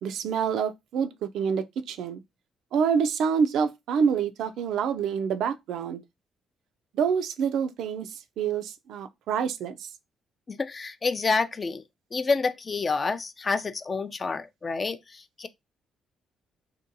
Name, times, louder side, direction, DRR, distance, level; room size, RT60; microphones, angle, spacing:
voice 1, 0.0-2.2 2.7-6.0 6.9-9.9, right 6 dB, 80° right, 0.3 m, -27 dB
voice 2, 10.5-11.8 12.1-15.5, left 4 dB, 35° left, 0.3 m, -28 dB
2.7 x 2.2 x 2.5 m
cardioid pair, 90°, 0 cm